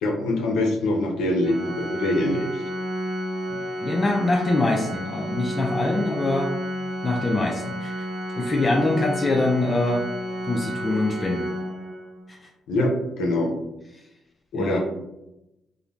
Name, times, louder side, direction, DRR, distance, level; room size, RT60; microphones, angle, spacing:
voice 1, 0.0-2.6 12.7-13.5 14.5-14.8, left 1 dB, 85° left, 2 dB, 0.5 m, -24 dB
Organ, 1.4-12.3, equal, 65° right, 0.5 m, -31 dB
voice 2, 3.5-6.5 7.0-8.1 8.4-10.0 10.5-11.5 12.3-12.5 14.5-14.8, left 2 dB, 30° left, 1 dB, 0.3 m, -24 dB
2.5 x 2.0 x 3.0 m, 0.89 s
cardioid pair, 90°, 0 cm